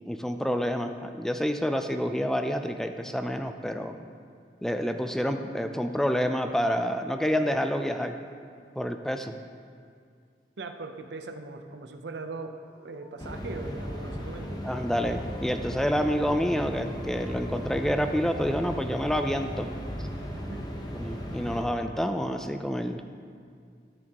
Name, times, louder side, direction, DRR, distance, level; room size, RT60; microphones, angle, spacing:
voice 1, 0.1-4.0 4.6-8.2 8.8-9.3 14.6-19.7 21.0-23.1, equal, 5° left, 6 dB, 0.3 m, -28 dB
voice 2, 10.6-12.5 12.8-14.7 20.3-20.6, right 3 dB, 75° right, 6 dB, 0.6 m, -40 dB
Dog, 12.5-18.8, equal, 75° left, 1.8 m, -53 dB
sound 1, 13.2-21.6, equal, 25° left, 0.9 m, -36 dB
13.5 x 7.4 x 2.9 m, 2.2 s
head